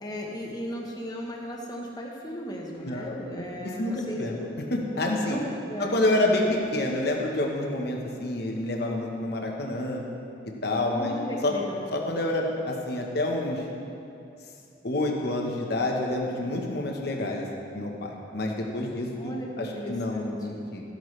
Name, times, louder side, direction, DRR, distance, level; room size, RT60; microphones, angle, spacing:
voice 1, 0.0-4.6 5.3-6.0 10.9-11.9 19.2-20.4, equal, 20° left, -1 dB, 1.1 m, -36 dB
voice 2, 2.8-3.2 3.6-4.4 4.7-5.4 5.8-10.0 10.6-11.2 11.4-11.5 11.9-13.6 14.8-17.5 17.7-20.8, left 1 dB, 55° left, 0 dB, 1.1 m, -28 dB
13.0 x 9.1 x 3.3 m, 2.7 s
head